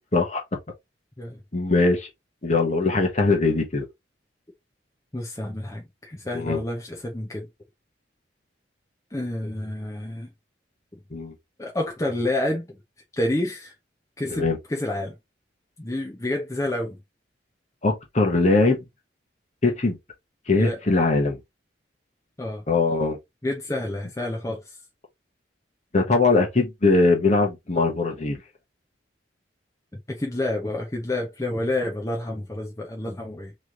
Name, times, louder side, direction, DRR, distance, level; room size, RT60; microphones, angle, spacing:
voice 1, 1.5-2.1 2.4-3.9 6.3-6.6 11.1-11.3 14.3-14.6 17.8-18.8 19.6-20.0 20.5-21.4 22.7-23.2 25.9-28.4, left 3 dB, 35° left, 1.1 m, -21 dB
voice 2, 5.1-7.5 9.1-10.3 11.6-12.8 13.2-13.7 14.2-15.1 15.8-17.0 20.6-20.8 22.4-22.6 23.4-24.8 30.1-33.6, left 1 dB, 15° left, 0.8 m, -29 dB
3.2 x 3.1 x 3.8 m
head